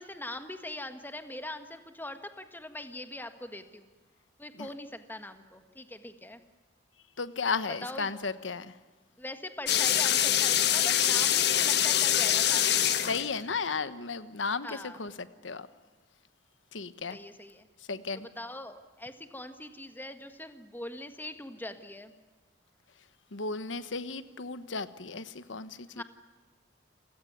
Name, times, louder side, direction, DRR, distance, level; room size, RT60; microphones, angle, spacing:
voice 1, 0.0-3.9 4.4-6.4 7.8-8.2 9.2-12.8 14.6-15.0 17.1-17.7 18.1-22.1 25.9-26.0, left 1 dB, 10° left, 8 dB, 1.6 m, -42 dB
voice 2, 7.2-8.7 13.1-15.1 15.4-15.7 16.7-17.2 17.9-18.3 23.3-26.0, left 4 dB, 90° left, 13 dB, 1.2 m, -34 dB
sound 1, 9.7-13.5, left 10 dB, 60° left, 1.4 m, -24 dB
29.5 x 17.0 x 9.5 m, 1.4 s
head